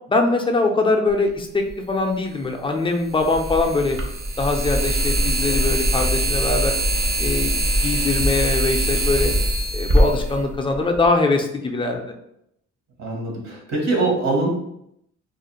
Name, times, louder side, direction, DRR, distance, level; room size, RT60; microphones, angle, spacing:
voice 1, 0.1-4.0 4.4-6.7 7.2-7.5 7.8-9.3 9.7-12.2, left 3 dB, 20° left, 3 dB, 0.3 m, -22 dB
sound 1, 1.7-1.8 3.1-11.1, right 1 dB, 40° right, 0.6 m, -22 dB
voice 2, 13.0-14.5, right 3 dB, 60° right, -1 dB, 1.0 m, -23 dB
2.4 x 2.0 x 2.9 m, 0.76 s
cardioid pair, 90°, 30 cm